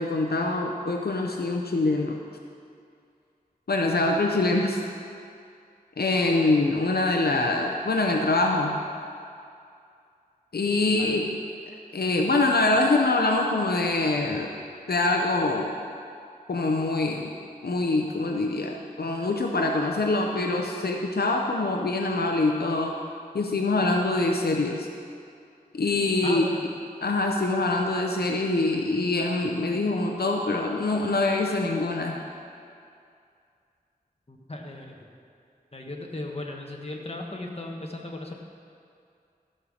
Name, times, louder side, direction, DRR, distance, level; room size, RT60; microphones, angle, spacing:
voice 1, 0.0-2.2 3.7-4.8 6.0-8.8 10.5-11.2 11.9-14.5 14.9-15.8 16.5-17.3 17.6-22.9 23.3-24.9 25.7-26.5 27.0-32.2, left 2 dB, 85° left, 1 dB, 0.7 m, -24 dB
voice 2, 26.2-26.7 34.3-35.1 35.7-38.3, left 1 dB, 40° left, 0 dB, 1.4 m, -36 dB
14.0 x 5.6 x 6.4 m, 2.4 s
wide cardioid pair, 65°, 16 cm